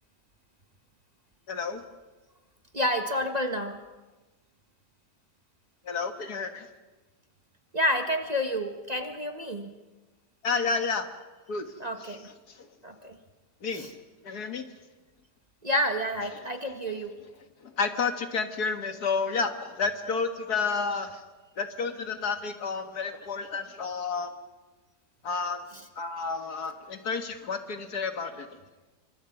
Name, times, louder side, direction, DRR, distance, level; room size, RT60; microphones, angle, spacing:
voice 1, 1.5-1.8 5.9-6.7 10.4-11.1 11.5-11.7 13.6-13.9 14.2-14.6 17.8-21.2 21.6-24.3 25.2-25.6 26.0-28.5, left 4 dB, 65° left, 7 dB, 2.1 m, -30 dB
voice 2, 2.7-3.8 7.7-9.7 11.8-12.3 12.8-13.2 13.7-13.9 15.6-17.1 25.7-25.9, equal, 25° right, 5 dB, 1.5 m, -29 dB
28.0 x 25.0 x 6.0 m, 1.2 s
omnidirectional pair, 1.8 m